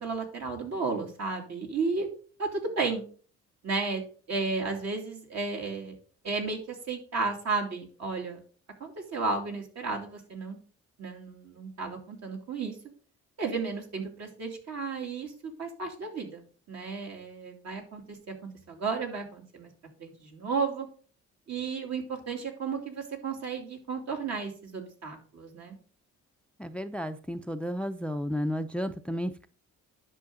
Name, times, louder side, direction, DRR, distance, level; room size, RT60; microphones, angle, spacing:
voice 1, 0.0-2.1 2.4-3.0 3.6-4.0 4.3-5.9 6.2-8.4 8.8-10.6 11.0-12.8 13.4-16.4 16.7-19.7 20.0-20.9 21.5-25.7, right 4 dB, 60° right, 1 dB, 3.0 m, -33 dB
voice 2, 26.6-29.5, equal, 5° left, 10 dB, 0.5 m, -32 dB
10.5 x 6.4 x 3.8 m, 0.41 s
cardioid pair, 90°, 30 cm